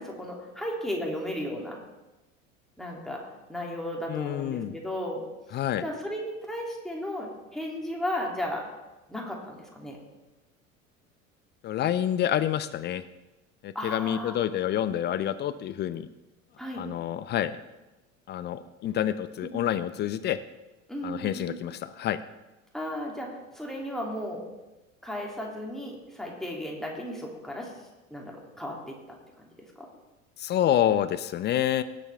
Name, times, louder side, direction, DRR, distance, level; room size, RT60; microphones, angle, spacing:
voice 1, 0.0-1.8 2.8-3.2 3.5-8.7 9.1-10.0 13.7-14.4 16.6-16.8 19.4-19.6 20.9-21.6 22.7-24.4 25.0-27.7 28.1-29.0 29.8-29.9, left 1 dB, ahead, -2 dB, 2.8 m, -35 dB
voice 2, 4.1-4.8 5.5-5.8 11.6-13.0 13.6-16.1 16.8-17.6 18.3-20.4 21.0-22.2 30.4-31.8, left 11 dB, 25° left, 14 dB, 0.5 m, -28 dB
17.5 x 7.6 x 3.5 m, 1.0 s
figure-of-eight pair, 70°, 40 cm